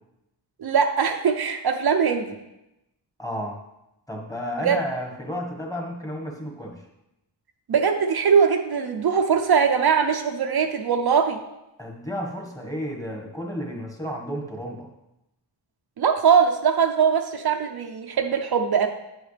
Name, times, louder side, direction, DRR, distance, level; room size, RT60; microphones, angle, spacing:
voice 1, 0.6-2.4 4.6-4.8 7.7-11.4 16.0-18.9, right 6 dB, 60° right, 4 dB, 0.6 m, -21 dB
voice 2, 3.2-3.6 4.1-6.9 11.8-14.9, equal, 10° left, 0 dB, 1.4 m, -32 dB
8.7 x 8.0 x 3.3 m, 0.91 s
wide cardioid pair, 130°, 43 cm